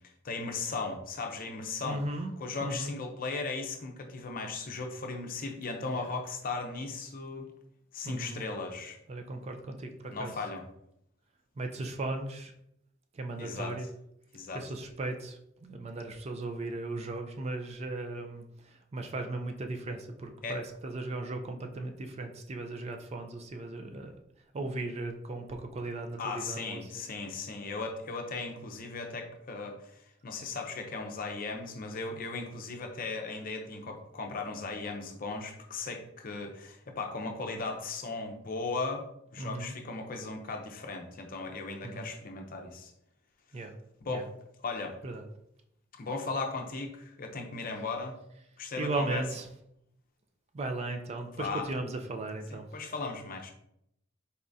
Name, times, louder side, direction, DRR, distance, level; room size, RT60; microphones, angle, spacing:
voice 1, 0.2-2.0 2.4-7.5 7.9-9.0 10.1-10.6 13.4-13.7 14.3-14.6 20.4-20.6 26.2-29.8 30.2-39.1 39.3-42.9 44.0-44.3 44.6-45.0 46.0-48.2 48.6-49.2 51.4-51.7 52.5-53.5, left 3 dB, 45° left, 3 dB, 0.6 m, -37 dB
voice 2, 1.8-2.9 5.9-6.1 8.0-8.4 9.1-10.3 11.6-12.5 13.1-13.9 14.5-24.1 24.5-27.1 39.4-39.7 41.8-42.1 43.5-43.8 44.1-44.3 45.0-45.3 48.8-49.5 50.5-52.7, right 2 dB, 30° right, 5 dB, 0.4 m, -37 dB
4.1 x 3.5 x 2.6 m, 0.77 s
head